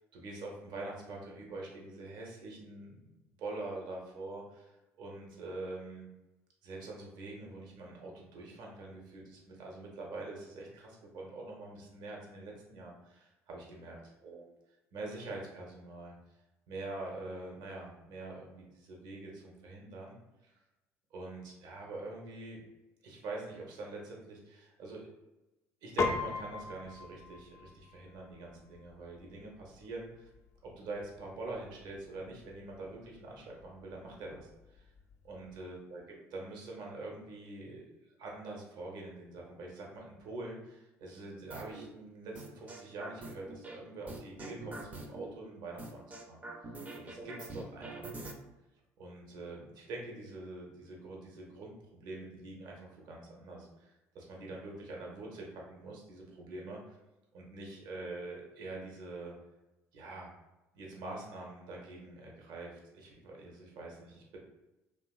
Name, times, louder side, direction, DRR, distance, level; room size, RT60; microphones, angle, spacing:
voice 1, 0.1-3.1 3.4-6.1 6.6-14.5 14.9-16.1 16.7-20.2 20.4-20.5 21.1-22.6 23.0-25.1 25.8-30.3 30.6-34.9 35.2-36.0 36.3-37.8 38.2-46.4 46.9-48.3 49.0-57.0 57.3-59.3 59.9-60.3 60.7-64.4, right 2 dB, 60° right, -1 dB, 0.8 m, -45 dB
Piano, 26.0-35.6, left 4 dB, 40° left, 0.4 m, -42 dB
sound 1, 41.5-41.8 42.4-43.8 44.1-45.3 45.8-48.3, right 2 dB, 20° right, 0.5 m, -44 dB
2.8 x 2.4 x 2.3 m, 0.99 s
hypercardioid pair, 55°, 8 cm